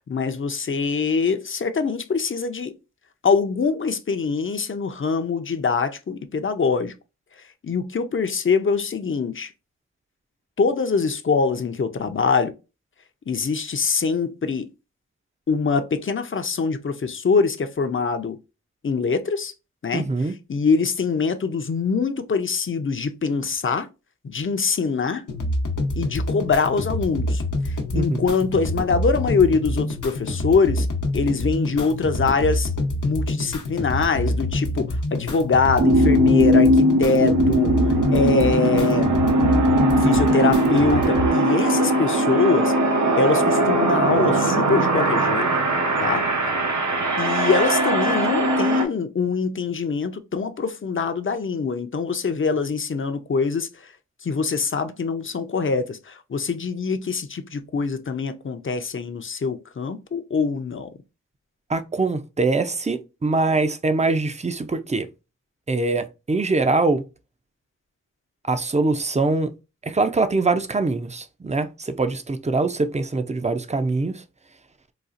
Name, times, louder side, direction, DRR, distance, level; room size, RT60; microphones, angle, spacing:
voice 1, 0.0-2.7 3.2-6.9 7.4-9.5 10.6-12.5 13.3-14.7 15.5-18.4 18.8-19.5 19.8-20.1 20.5-23.9 24.2-25.2 25.9-30.9 31.1-32.7 33.0-39.1 40.0-42.7 43.2-45.5 46.0-46.3 47.2-53.9 54.2-60.9, left 5 dB, 40° left, 0.5 m, -23 dB
voice 2, 19.9-20.3 27.9-28.3 61.7-65.1 65.7-67.0 68.5-69.5 69.8-74.2, right 3 dB, 25° right, 0.5 m, -23 dB
sound 1, 25.3-41.3, left 1 dB, 80° left, 0.8 m, -26 dB
sound 2, 35.8-48.9, right 1 dB, 70° right, 0.8 m, -20 dB
4.1 x 2.4 x 2.4 m
wide cardioid pair, 45°, 30 cm